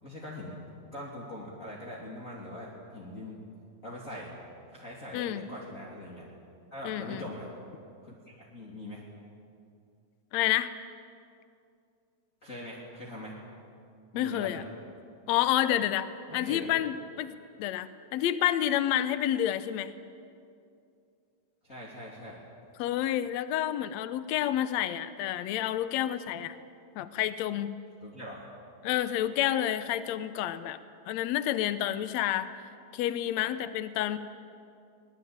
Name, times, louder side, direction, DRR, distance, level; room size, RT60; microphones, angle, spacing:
voice 1, 0.0-0.5 0.9-3.4 3.8-4.3 4.7-6.2 6.7-7.5 8.0-9.0 12.4-13.3 14.1-14.6 16.3-16.7 21.6-22.4 28.0-28.5, left 1 dB, 25° left, -5 dB, 3.2 m, -42 dB
voice 2, 6.8-7.2 10.3-10.7 14.2-14.6 15.3-19.9 22.8-26.6 27.0-27.8 28.8-30.8 31.1-32.5 32.9-34.2, left 12 dB, 75° left, 12 dB, 2.0 m, -29 dB
24.0 x 19.5 x 8.8 m, 2.4 s
omnidirectional pair, 3.4 m